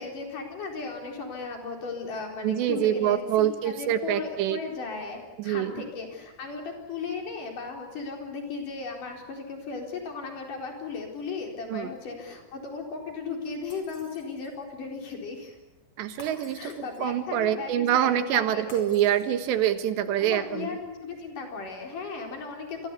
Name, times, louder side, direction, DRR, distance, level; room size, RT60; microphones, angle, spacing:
voice 1, 0.0-15.6 16.0-16.2 16.5-18.8 20.2-22.9, left 4 dB, 50° left, 2 dB, 5.6 m, -36 dB
voice 2, 2.4-4.6 5.4-5.8 11.7-11.9 16.0-16.7 17.0-20.7, right 11 dB, 90° right, 10 dB, 3.7 m, -25 dB
Shatter, 13.7-14.6 16.2-17.2 18.7-19.7, left 1 dB, 35° left, 5.6 m, -51 dB
27.0 x 23.0 x 8.4 m, 1.0 s
omnidirectional pair, 4.9 m